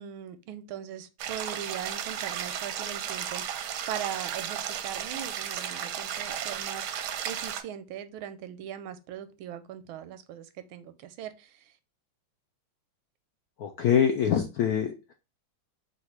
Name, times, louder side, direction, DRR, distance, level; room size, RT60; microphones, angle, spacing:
voice 1, 0.0-11.7, right 10 dB, 90° right, 1.4 m, -40 dB
sound 1, 1.2-7.6, right 9 dB, 75° right, 1.0 m, -34 dB
voice 2, 13.6-15.1, left 8 dB, 85° left, 0.8 m, -25 dB
4.1 x 2.4 x 4.4 m
omnidirectional pair, 2.2 m